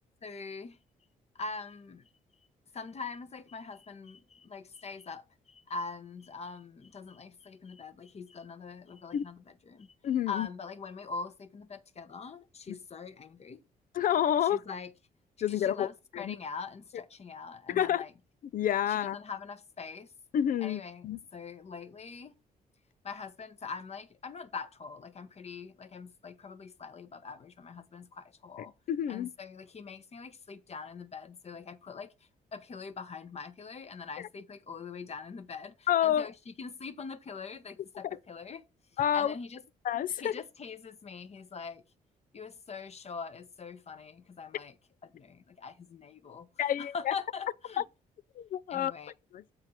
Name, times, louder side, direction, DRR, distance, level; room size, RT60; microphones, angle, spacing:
voice 1, 0.2-0.8 1.3-2.1 2.7-9.9 10.3-13.6 14.4-14.9 15.5-18.1 18.9-20.1 20.6-22.3 23.0-28.7 29.1-38.6 38.9-39.6 40.2-41.8 42.3-44.8 45.0-47.8 48.7-49.1, left 5 dB, 40° left, 1.1 m, -43 dB
voice 2, 10.0-10.5 13.9-14.6 15.4-15.9 16.1-16.4 17.7-18.0 18.5-19.2 20.3-21.2 28.9-29.3 35.9-36.3 39.0-39.3 39.9-40.4 46.6-47.1 48.4-48.9 49.3-49.4, left 10 dB, 60° left, 0.5 m, -28 dB
7.6 x 4.4 x 5.7 m
cardioid pair, 80°, 16 cm